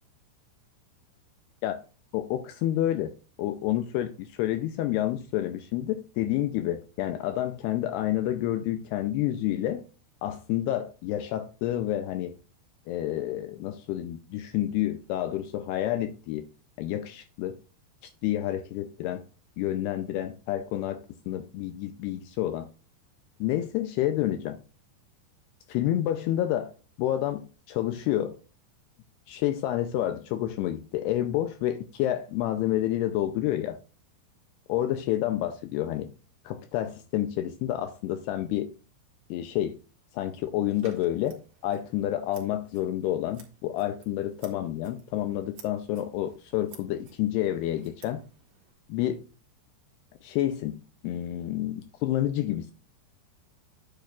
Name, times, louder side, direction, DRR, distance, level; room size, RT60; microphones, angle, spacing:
voice 1, 2.1-3.1 3.4-9.8 10.2-12.4 12.9-16.5 16.8-17.6 18.0-19.2 19.6-22.7 23.4-24.6 25.7-28.4 29.3-33.8 34.7-36.1 36.5-38.7 39.3-39.8 40.1-48.2 48.9-49.2 50.2-50.8 51.0-52.7, left 13 dB, 90° left, 2.3 m, -29 dB
Scissors, 40.7-48.7, right 6 dB, 50° right, 2.5 m, -56 dB
9.4 x 9.0 x 2.4 m
omnidirectional pair, 5.3 m